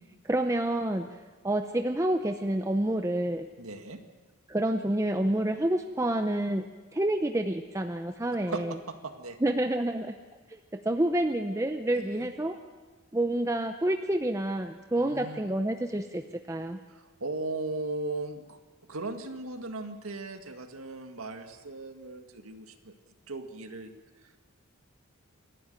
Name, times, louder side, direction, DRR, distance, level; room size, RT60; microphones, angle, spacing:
voice 1, 0.2-1.1 1.4-3.5 4.5-6.6 6.9-8.7 9.4-10.2 10.5-12.5 13.1-16.2 16.5-16.8, right 1 dB, 15° right, 6 dB, 0.6 m, -28 dB
voice 2, 3.6-4.0 8.5-9.4 12.0-12.3 15.0-15.5 16.9-18.6 18.9-22.9 23.3-23.9, right 2 dB, 90° right, 6 dB, 2.0 m, -37 dB
28.0 x 12.0 x 9.1 m, 1.3 s
head